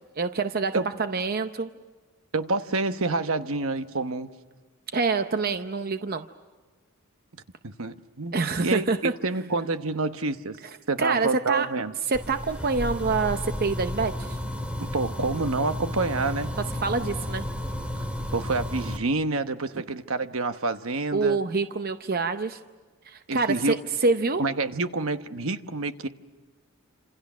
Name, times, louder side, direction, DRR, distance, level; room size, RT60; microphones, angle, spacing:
voice 1, 0.2-1.7 4.9-6.3 8.3-9.1 11.0-11.7 12.1-14.4 16.8-17.4 21.1-22.6 23.1-24.4, right 4 dB, 45° right, 8 dB, 0.7 m, -26 dB
voice 2, 2.3-4.3 7.6-10.6 10.9-11.9 14.8-16.6 18.3-21.4 23.3-23.8 24.4-26.1, right 3 dB, 65° right, 9 dB, 1.1 m, -28 dB
sound 1, 12.1-19.0, left 1 dB, 5° right, 2.1 m, -32 dB
29.0 x 27.0 x 6.2 m, 1.4 s
head